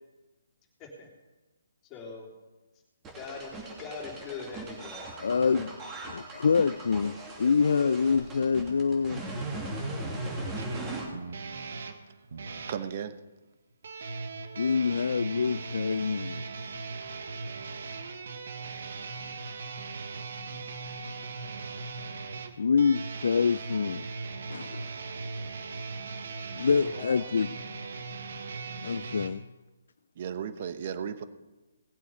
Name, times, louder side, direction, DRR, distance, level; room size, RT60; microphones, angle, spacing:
voice 1, 1.8-2.3 3.1-5.7 26.8-27.3, left 5 dB, 20° left, 3.4 m, -42 dB
sound 1, 3.0-11.0, right 2 dB, 15° right, 2.8 m, -38 dB
voice 2, 5.2-5.7 6.1-9.2 14.6-16.4 22.6-24.1 24.5-24.9 26.5-27.5 28.8-29.4, left 5 dB, 65° left, 0.4 m, -26 dB
sound 2, 10.6-12.8 13.8-29.3, right 4 dB, 60° right, 1.4 m, -39 dB
voice 3, 12.7-13.1 30.2-31.2, right 8 dB, 45° right, 1.1 m, -34 dB
19.0 x 8.3 x 5.2 m
figure-of-eight pair, 140°, 0 cm